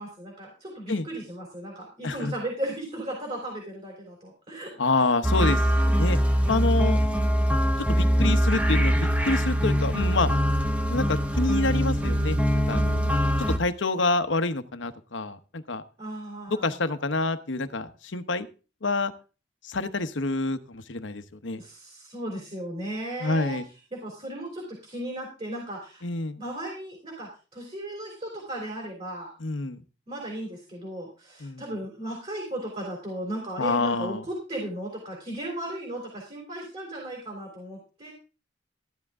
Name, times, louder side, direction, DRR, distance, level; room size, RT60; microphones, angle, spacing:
voice 1, 0.0-4.7 5.0-5.1 16.0-16.7 21.6-23.6 23.9-26.0 26.3-29.3 30.1-38.1, right 1 dB, 35° right, -2 dB, 3.5 m, -36 dB
voice 2, 4.8-6.2 6.5-7.0 7.9-10.3 10.9-15.8 16.5-18.5 18.8-19.1 19.6-21.6 23.2-23.6 26.0-26.4 29.4-29.8 31.4-31.6 33.6-34.2, left 3 dB, 75° left, 10 dB, 1.0 m, -27 dB
sound 1, 5.2-13.6, equal, 5° right, 1.0 m, -23 dB
14.0 x 10.5 x 3.6 m, 0.34 s
head